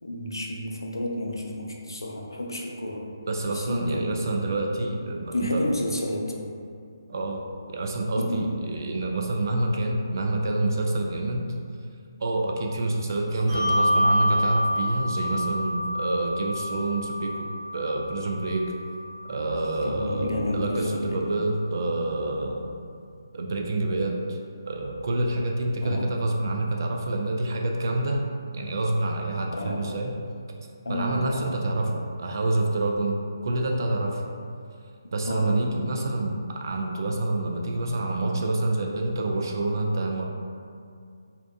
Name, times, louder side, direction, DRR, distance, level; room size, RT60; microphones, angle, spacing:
voice 1, 0.0-3.1 3.5-4.3 5.3-6.4 8.2-8.5 19.8-21.2 25.8-26.2 29.5-29.9 30.8-31.8 35.3-35.9, left 1 dB, 90° left, 0 dB, 0.4 m, -31 dB
voice 2, 3.3-5.6 7.1-7.4 7.7-11.5 12.2-17.5 17.7-18.6 19.3-22.7 23.3-24.4 24.6-28.2 28.5-30.1 30.9-34.2 35.1-40.3, right 2 dB, 55° right, 1 dB, 0.3 m, -27 dB
Bell, 13.5-20.3, left 1 dB, 85° right, 1.2 m, -28 dB
2.6 x 2.1 x 2.5 m, 2.3 s
figure-of-eight pair, 150°, 2 cm